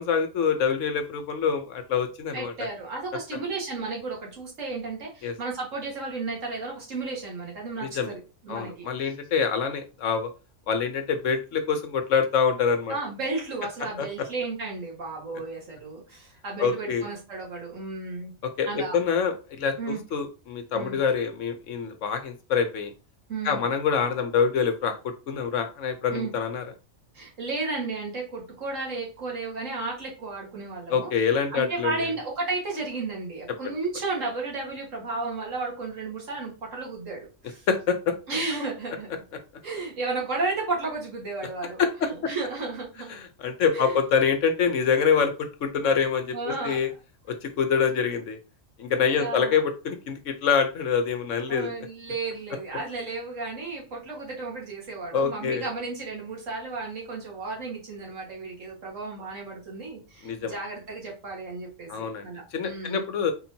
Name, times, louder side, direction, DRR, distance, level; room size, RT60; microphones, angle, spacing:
voice 1, 0.0-2.5 5.2-5.3 7.8-8.1 8.5-10.3 10.7-12.9 14.0-14.1 16.6-17.1 18.6-22.9 23.4-24.9 25.3-26.6 30.9-32.1 33.6-33.7 37.7-38.1 41.8-42.1 43.1-46.9 47.3-48.4 48.8-51.7 55.1-55.6 60.2-60.6 61.9-63.3, left 6 dB, 70° left, 8 dB, 1.1 m, -25 dB
voice 2, 2.3-8.9 12.9-18.3 18.7-19.0 19.8-20.0 20.7-21.0 23.3-23.6 26.1-26.3 27.1-31.1 31.5-37.7 38.3-39.1 39.6-43.1 43.7-44.0 46.3-46.8 48.9-49.6 51.5-63.0, right 3 dB, 70° right, -2 dB, 2.1 m, -33 dB
4.4 x 4.3 x 2.8 m, 0.32 s
omnidirectional pair, 1.4 m